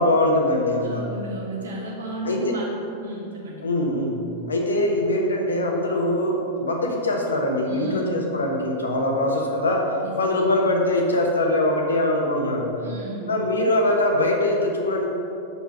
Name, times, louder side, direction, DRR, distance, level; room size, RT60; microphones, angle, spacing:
voice 1, 0.0-1.1 2.2-2.5 3.6-4.2 4.5-9.9 10.2-12.7 13.3-15.1, left 1 dB, 75° left, 1 dB, 1.0 m, -22 dB
voice 2, 0.8-2.7 3.0-3.6 7.7-8.2 10.0-10.4 12.8-13.4, right 1 dB, 65° right, -2 dB, 1.6 m, -33 dB
6.1 x 5.4 x 5.5 m, 2.8 s
figure-of-eight pair, 90°, 0 cm